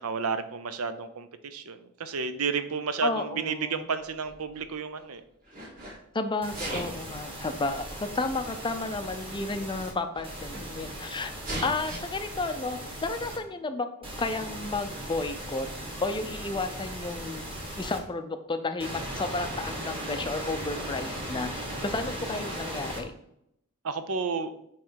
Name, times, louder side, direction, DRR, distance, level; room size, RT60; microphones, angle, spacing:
voice 1, 0.0-5.2 23.8-24.5, right 5 dB, 70° right, 11 dB, 0.6 m, -31 dB
voice 2, 3.0-3.9 6.1-11.3 11.6-13.9 14.2-15.7 16.0-17.5 17.8-21.5 21.8-23.1, left 3 dB, 20° left, 8 dB, 0.5 m, -32 dB
Sneeze, 4.0-5.0 5.4-6.0 6.4-7.1 8.0-8.1 9.0-9.1 9.3-9.4 9.8-10.9 11.4-12.0, right 1 dB, 40° right, 2.2 m, -38 dB
sound 1, 6.4-9.9 10.2-13.4 14.0-18.0 18.8-23.0, right 1 dB, 25° right, 1.5 m, -38 dB
8.5 x 3.2 x 4.6 m, 0.77 s
head